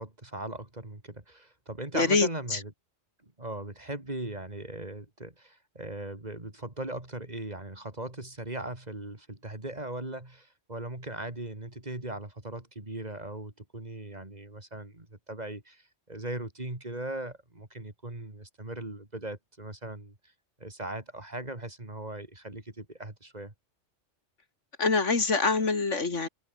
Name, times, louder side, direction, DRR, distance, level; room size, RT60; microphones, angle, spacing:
voice 1, 0.0-2.7 3.2-20.2 20.6-23.5, right 1 dB, 35° right, 3.4 m, -39 dB
voice 2, 1.9-2.6 24.8-26.3, left 4 dB, 75° left, 2.8 m, -25 dB
omnidirectional pair, 1.2 m